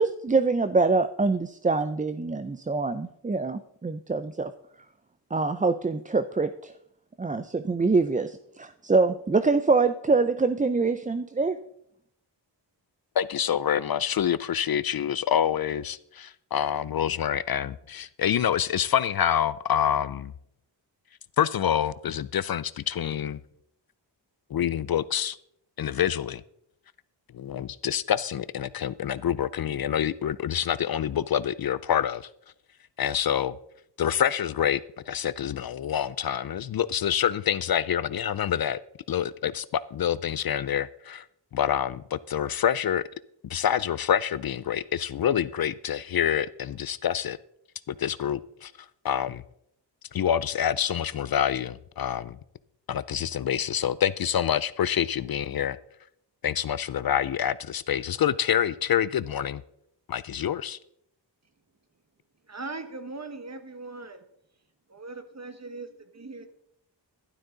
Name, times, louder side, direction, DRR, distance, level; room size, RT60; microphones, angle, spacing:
voice 1, 0.0-4.5 5.3-6.7 7.2-11.6, right 3 dB, 20° right, 11 dB, 0.5 m, -25 dB
voice 2, 13.2-20.3 21.4-23.4 24.5-25.4 25.8-26.4 27.3-32.3 33.0-33.6 34.0-34.8 35.1-38.8 39.1-41.3 41.5-43.0 43.5-47.4 47.9-48.7 49.0-49.4 50.1-52.4 52.9-55.8 56.4-59.6 60.1-60.8, left 9 dB, 55° left, 17 dB, 0.5 m, -27 dB
voice 3, 62.5-64.2 64.9-66.5, right 3 dB, 35° right, 9 dB, 1.5 m, -40 dB
12.0 x 12.0 x 3.9 m, 0.74 s
wide cardioid pair, 85°, 45 cm